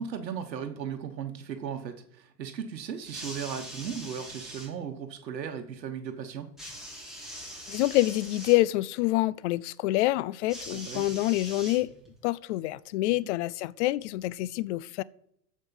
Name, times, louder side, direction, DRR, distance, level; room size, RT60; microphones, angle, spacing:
voice 1, 0.0-6.5 10.7-11.1, right 7 dB, 85° right, 1.2 m, -36 dB
sound 1, 3.0-4.7 6.6-8.6 10.5-12.2 13.2-13.3, equal, ahead, 3.9 m, -42 dB
voice 2, 7.7-11.9 12.2-15.0, left 17 dB, 45° left, 0.5 m, -27 dB
14.0 x 5.2 x 5.4 m
hypercardioid pair, 110°, 49 cm